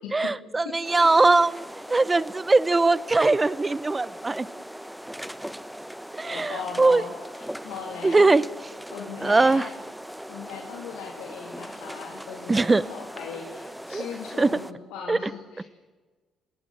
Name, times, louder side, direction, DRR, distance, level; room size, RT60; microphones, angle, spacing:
voice 1, 0.1-1.6 1.9-4.5 6.1-7.0 8.0-8.5 9.2-9.7 12.5-12.8 13.9-14.0 14.4-14.6 15.1-15.2 15.6-15.7, right 3 dB, 25° right, 19 dB, 0.9 m, -21 dB
sound 1, 0.8-14.7, equal, 5° right, 1.2 m, -40 dB
voice 2, 6.3-8.3 8.9-9.7 10.3-15.6, left 6 dB, 75° left, 0 dB, 3.0 m, -38 dB
30.0 x 18.5 x 7.5 m, 1.4 s
hypercardioid pair, 45°, 0 cm